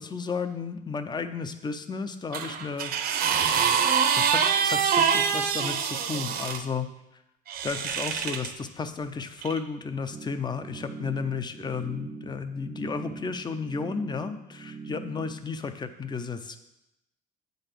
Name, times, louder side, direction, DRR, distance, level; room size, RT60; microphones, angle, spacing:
voice 1, 0.0-3.3 3.7-3.9 4.1-6.9 7.6-16.6, left 5 dB, 25° left, 9 dB, 0.6 m, -33 dB
sound 1, 2.3-6.6 7.5-8.5 9.4-9.6, right 7 dB, 65° right, 0.8 m, -25 dB
sound 2, 10.1-15.4, right 4 dB, 20° right, 0.5 m, -41 dB
8.0 x 4.0 x 6.7 m, 0.89 s
cardioid pair, 110°, 17 cm